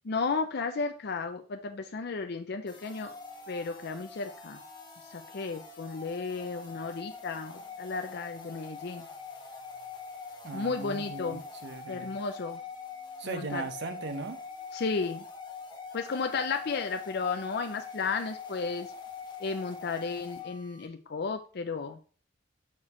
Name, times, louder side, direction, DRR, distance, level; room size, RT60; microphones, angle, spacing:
voice 1, 0.1-3.2 3.5-4.6 5.1-9.1 10.5-11.4 11.9-12.6 13.2-13.7 14.7-15.2 15.9-18.9 19.4-22.0, left 4 dB, 55° left, 6 dB, 0.5 m, -33 dB
sound 1, 2.7-20.9, left 4 dB, 25° left, 1.3 m, -44 dB
voice 2, 10.4-12.1 13.2-14.4, right 3 dB, 65° right, 9 dB, 0.8 m, -38 dB
6.0 x 4.7 x 4.3 m, 0.38 s
head